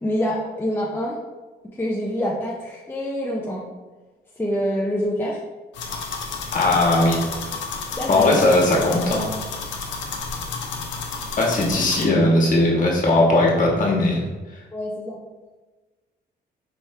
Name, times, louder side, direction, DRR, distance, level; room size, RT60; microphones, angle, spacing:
voice 1, 0.0-1.2 1.7-3.7 4.4-5.4 8.0-8.5 14.7-15.2, equal, 10° left, -3 dB, 0.5 m, -26 dB
sound 1, 5.7-12.0, left 4 dB, 85° left, 0.7 m, -31 dB
voice 2, 6.5-7.2 8.1-9.3 11.4-14.2, left 2 dB, 45° left, -2 dB, 1.3 m, -18 dB
4.8 x 3.1 x 3.1 m, 1.2 s
cardioid pair, 120°, 19 cm